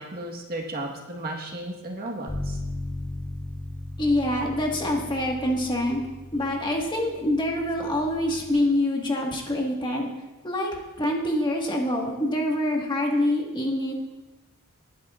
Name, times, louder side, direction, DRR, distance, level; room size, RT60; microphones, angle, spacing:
voice 1, 0.0-2.6, right 1 dB, 45° right, 0 dB, 1.5 m, -34 dB
Bass guitar, 2.3-8.5, left 1 dB, 60° left, 3.2 m, -37 dB
voice 2, 4.0-6.0 6.3-10.1 10.4-13.9, left 1 dB, 20° left, 0 dB, 1.7 m, -25 dB
19.5 x 9.8 x 2.5 m, 1.1 s
head